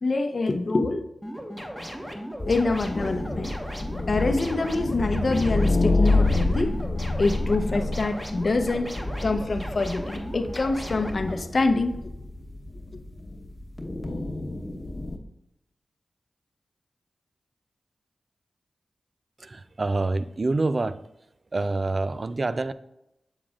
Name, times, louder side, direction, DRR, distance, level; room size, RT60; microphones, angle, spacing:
voice 1, 0.0-1.0 2.5-3.5 4.1-6.7 7.2-8.9 9.2-12.1, left 3 dB, 55° left, 0.7 m, -25 dB
sound 1, 1.2-11.3, equal, 10° right, 1.1 m, -37 dB
sound 2, 2.4-15.2, left 2 dB, 40° left, 1.0 m, -28 dB
voice 2, 19.4-21.0 21.5-22.7, right 3 dB, 50° right, 0.4 m, -26 dB
7.3 x 7.1 x 2.4 m
cardioid pair, 45°, 0 cm